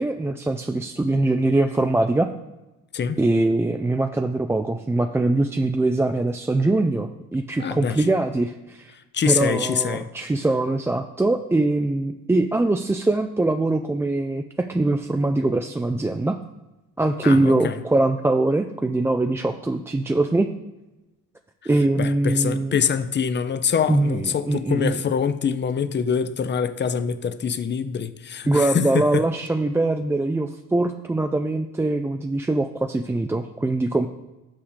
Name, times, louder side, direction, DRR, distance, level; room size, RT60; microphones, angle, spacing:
voice 1, 0.0-2.3 3.2-8.9 9.2-16.4 17.0-20.5 21.7-22.8 23.9-25.0 28.5-34.1, right 2 dB, 10° right, 0.3 m, -22 dB
voice 2, 7.6-8.1 9.1-10.1 17.2-17.8 22.0-29.2, left 7 dB, 35° left, 0.6 m, -24 dB
6.0 x 4.9 x 6.4 m
supercardioid pair, 70°, 33 cm